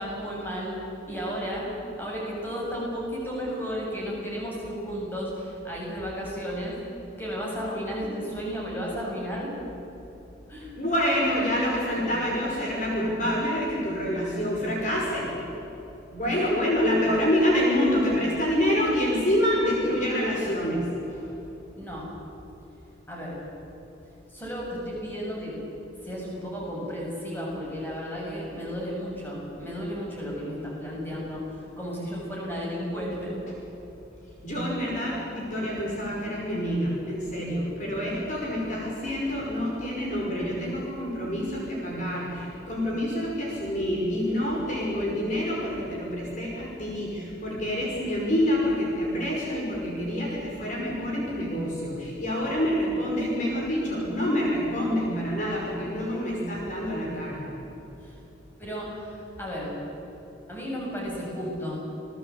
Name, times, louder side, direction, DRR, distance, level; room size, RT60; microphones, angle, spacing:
voice 1, 0.0-1.7 2.0-6.7 7.2-9.5 10.5-10.7 16.3-16.5 21.8-22.1 23.1-23.4 24.3-25.6 26.0-33.4 58.0-58.2 58.6-59.8 60.5-61.8, equal, 10° left, -4 dB, 7.2 m, -33 dB
voice 2, 10.8-15.4 16.1-21.3 34.4-57.5, equal, 40° left, -3 dB, 5.3 m, -27 dB
28.5 x 19.0 x 8.5 m, 3.0 s
head